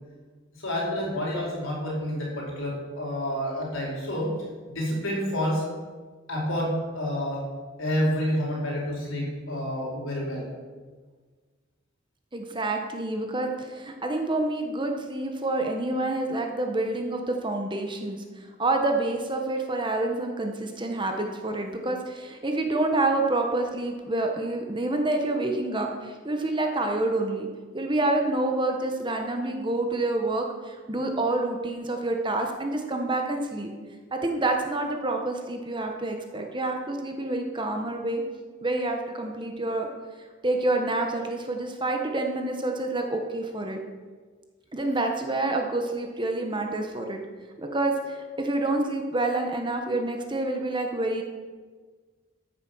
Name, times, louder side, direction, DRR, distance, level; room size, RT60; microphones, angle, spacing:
voice 1, 0.6-4.3 4.7-5.7 6.3-7.4 7.8-10.5, equal, 90° left, -3 dB, 4.8 m, -29 dB
voice 2, 12.3-27.5 27.7-33.7 34.1-38.2 38.6-39.9 40.4-43.8 44.7-47.2 47.6-51.2, right 2 dB, 25° right, 3 dB, 1.3 m, -28 dB
13.5 x 9.3 x 6.3 m, 1.5 s
head